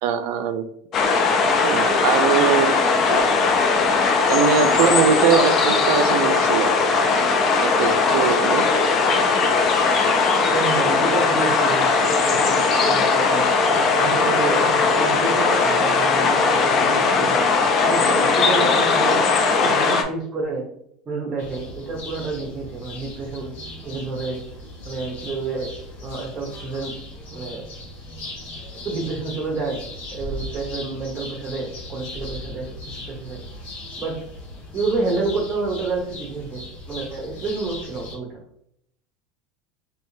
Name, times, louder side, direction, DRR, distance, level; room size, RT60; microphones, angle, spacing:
voice 1, 0.0-0.7 1.6-2.8 3.1-3.2 4.3-6.7 7.6-8.6, right 7 dB, 70° right, 10 dB, 0.4 m, -21 dB
sound 1, 0.9-20.0, left 4 dB, 40° left, 0.5 m, -19 dB
voice 2, 10.5-13.5 14.0-17.4 17.8-19.2 19.6-20.6 21.1-23.5 23.8-24.4 24.8-25.7 26.0-26.9 27.3-27.6 28.8-29.8 30.1-32.7 33.1-33.4 34.0-34.1 34.7-38.3, right 3 dB, 30° right, -3 dB, 0.8 m, -29 dB
sound 2, 21.4-38.1, left 1 dB, 75° left, 1.3 m, -38 dB
3.5 x 2.8 x 2.7 m, 0.70 s
supercardioid pair, 135°, 0 cm